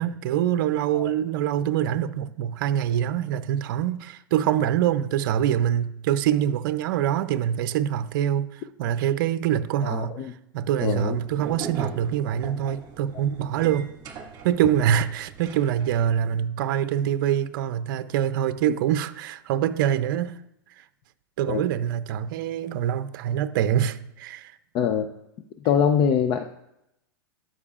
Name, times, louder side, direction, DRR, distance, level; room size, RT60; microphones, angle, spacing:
voice 1, 0.0-13.9 14.4-20.4 20.8-20.9 21.4-24.6, right 10 dB, 60° right, 0.6 m, -25 dB
voice 2, 9.8-10.3 10.8-11.2 21.5-21.6 24.7-25.1 25.6-26.4, left 7 dB, 35° left, 0.5 m, -23 dB
sound 1, 10.8-16.1, right 5 dB, 30° right, 1.8 m, -40 dB
13.5 x 5.5 x 2.4 m
hypercardioid pair, 120°, 12 cm